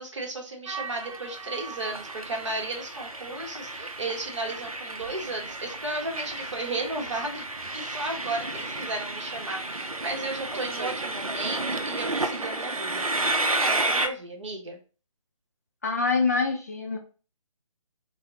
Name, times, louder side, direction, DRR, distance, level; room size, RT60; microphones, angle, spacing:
voice 1, 0.0-7.4 7.7-14.8, right 2 dB, 60° right, 2 dB, 1.0 m, -34 dB
Train, 0.7-14.1, right 2 dB, 90° right, 0.5 m, -32 dB
voice 2, 15.8-17.0, left 4 dB, 30° left, 2 dB, 0.4 m, -25 dB
4.1 x 2.0 x 2.7 m, 0.36 s
figure-of-eight pair, 145°, 18 cm